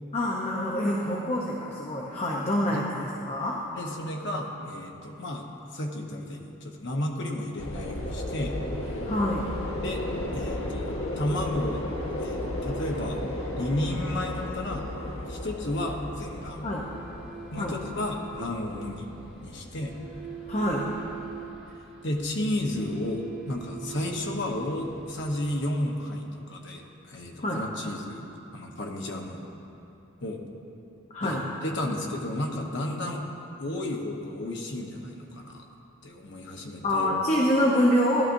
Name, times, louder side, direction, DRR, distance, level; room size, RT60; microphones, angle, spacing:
voice 1, 0.1-3.6 9.1-9.5 16.6-16.9 17.6-17.8 20.5-20.9 27.4-27.6 31.1-31.4 33.0-33.1 36.8-38.2, equal, 30° left, -3 dB, 0.8 m, -26 dB
voice 2, 3.7-5.4 5.7-8.6 9.8-10.0 10.3-11.8 12.2-13.2 13.6-14.9 15.3-16.7 17.5-19.1 19.4-19.9 22.0-28.3 28.5-29.4 30.2-30.4 31.2-33.2 33.6-35.6 36.0-37.1, left 1 dB, 55° left, 1 dB, 1.1 m, -32 dB
sound 1, 7.6-21.5, left 1 dB, 80° left, 1.4 m, -35 dB
sound 2, 16.2-25.5, right 7 dB, 5° right, 2.8 m, -44 dB
16.0 x 11.0 x 2.6 m, 2.9 s
head